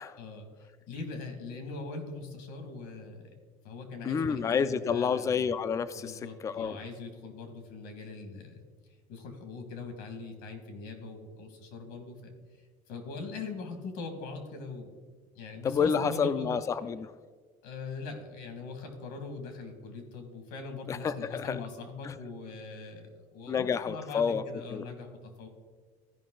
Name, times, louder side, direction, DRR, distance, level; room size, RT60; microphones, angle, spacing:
voice 1, 0.2-3.3 3.6-5.5 6.0-8.6 9.1-12.3 12.9-14.9 15.3-16.5 17.6-25.5, left 4 dB, 90° left, 5 dB, 1.9 m, -41 dB
voice 2, 4.0-6.8 15.6-17.1 20.9-21.6 22.0-22.2 23.5-24.4 24.7-24.9, left 6 dB, 20° left, 13 dB, 0.3 m, -29 dB
14.5 x 5.3 x 3.8 m, 1.5 s
cardioid pair, 160°, 15 cm